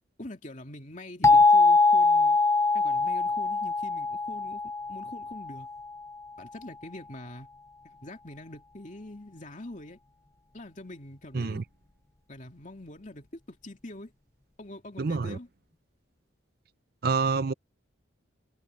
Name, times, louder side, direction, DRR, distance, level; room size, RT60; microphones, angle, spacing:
voice 1, 0.2-2.4 2.7-5.7 6.4-7.5 7.8-10.0 10.5-11.6 12.3-14.1 14.6-15.5, left 1 dB, 40° left, 2.7 m, -44 dB
sound 1, 1.2-5.9, left 3 dB, 15° left, 0.4 m, -23 dB
voice 2, 15.0-15.4 17.0-17.5, right 4 dB, 50° right, 0.5 m, -27 dB
head